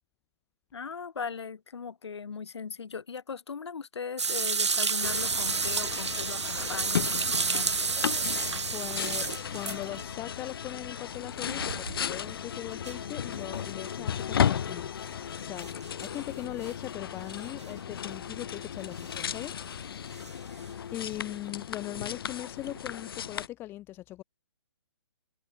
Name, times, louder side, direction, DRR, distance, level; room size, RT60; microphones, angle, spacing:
voice 1, 0.7-7.9, left 6 dB, 75° left, 3.4 m, -39 dB
sound 1, 4.2-10.1 11.6-12.3 12.8-12.9 14.2-14.3 15.6-16.2 16.6-16.7 17.6-17.7 19.0-19.2 20.2-20.3 22.7-22.8, right 5 dB, 85° right, 1.6 m, -30 dB
sound 2, 5.0-23.5, left 8 dB, 55° left, 0.9 m, -35 dB
voice 2, 8.7-14.9 15.4-15.7 16.0-19.5 20.9-24.2, left 15 dB, 15° left, 1.3 m, -40 dB
hypercardioid pair, 155°, 14 cm